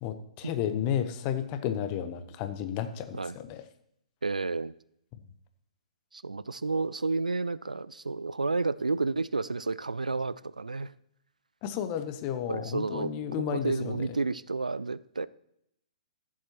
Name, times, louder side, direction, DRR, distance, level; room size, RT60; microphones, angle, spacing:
voice 1, 0.0-3.6 11.6-14.1, left 9 dB, 35° left, 10 dB, 0.9 m, -32 dB
voice 2, 4.2-4.7 6.1-10.9 12.5-15.3, right 3 dB, 85° right, 18 dB, 0.4 m, -31 dB
15.0 x 7.5 x 3.0 m, 0.75 s
figure-of-eight pair, 120°, 4 cm